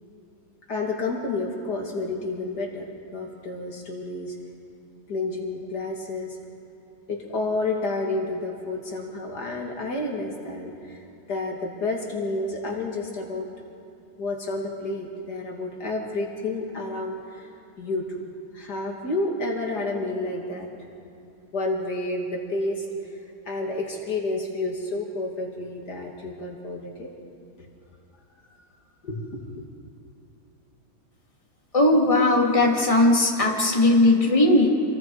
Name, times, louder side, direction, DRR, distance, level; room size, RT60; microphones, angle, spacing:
voice 1, 0.7-2.9 3.1-4.4 5.1-6.4 7.1-11.0 11.3-13.5 14.2-17.5 17.8-18.2 18.5-20.7 21.5-22.9 23.5-27.1 29.0-29.5, left 2 dB, 75° left, 0 dB, 2.9 m, -30 dB
voice 2, 31.7-34.7, left 2 dB, 20° left, -1 dB, 2.5 m, -18 dB
27.0 x 21.5 x 4.8 m, 2.8 s
omnidirectional pair, 1.8 m